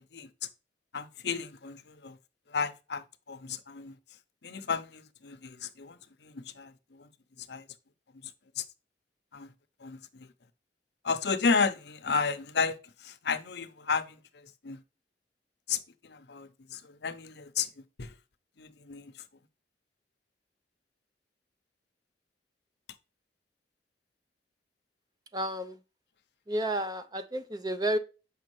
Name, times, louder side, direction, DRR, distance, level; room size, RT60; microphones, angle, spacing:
voice 1, 0.9-2.2 2.5-4.0 4.4-7.1 7.5-7.7 8.2-8.3 8.6-8.7 9.3-9.5 9.8-10.3 11.0-14.8 15.7-18.1 18.6-19.1, left 5 dB, 65° left, 0.7 m, -33 dB
voice 2, 25.3-25.7 26.5-28.0, right 1 dB, 20° right, 0.6 m, -31 dB
6.8 x 5.3 x 3.1 m
head